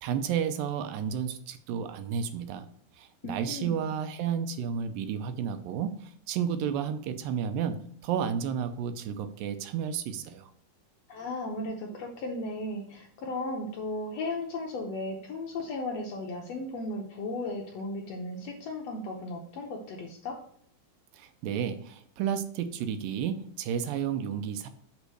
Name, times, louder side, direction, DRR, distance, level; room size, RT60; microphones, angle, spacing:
voice 1, 0.0-2.7 3.0-10.5 21.1-24.7, right 8 dB, 80° right, 9 dB, 2.3 m, -32 dB
voice 2, 3.2-3.9 11.1-20.4, left 2 dB, 85° left, 0 dB, 1.4 m, -35 dB
8.2 x 3.6 x 6.4 m, 0.63 s
omnidirectional pair, 4.2 m